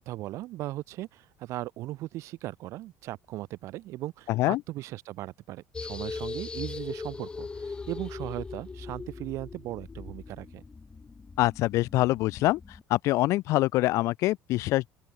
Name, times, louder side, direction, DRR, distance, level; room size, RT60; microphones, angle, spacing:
voice 1, 0.0-10.6, right 16 dB, 55° right, 3.7 m, -38 dB
voice 2, 4.3-4.6 11.4-12.6 12.9-14.9, left 18 dB, 60° left, 2.8 m, -25 dB
sound 1, 5.7-12.8, left 4 dB, 15° left, 4.2 m, -40 dB
open air
cardioid pair, 155°, 6 cm